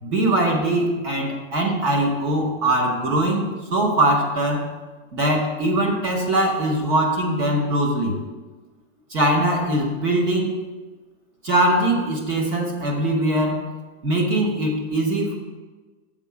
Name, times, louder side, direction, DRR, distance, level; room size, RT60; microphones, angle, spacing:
voice 1, 0.0-4.7 5.1-8.2 9.1-10.6 11.4-13.7 14.0-15.4, right 1 dB, 10° right, 1 dB, 0.5 m, -21 dB
7.3 x 4.6 x 6.6 m, 1.3 s
supercardioid pair, 170°, 39 cm